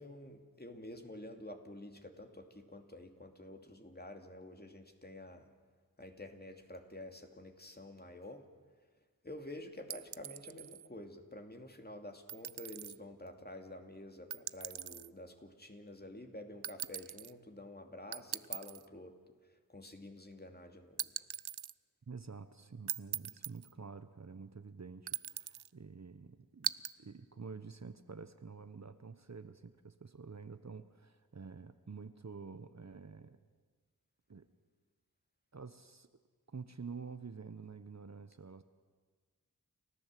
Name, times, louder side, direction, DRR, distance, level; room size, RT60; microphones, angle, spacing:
voice 1, 0.0-5.5 6.0-8.5 9.2-19.2 19.7-21.1, left 1 dB, 25° left, 4 dB, 2.6 m, -49 dB
sound 1, 9.9-10.9 12.3-13.0 14.3-15.1 16.6-17.3 18.1-18.9 21.0-21.7 22.9-23.7 25.1-25.7 26.6-26.9, right 10 dB, 85° right, 0.5 m, -40 dB
voice 2, 22.1-33.4 34.3-34.5 35.5-36.1 36.5-38.6, right 5 dB, 45° right, 11 dB, 1.1 m, -49 dB
30.0 x 14.0 x 7.7 m, 1.5 s
wide cardioid pair, 50°, 37 cm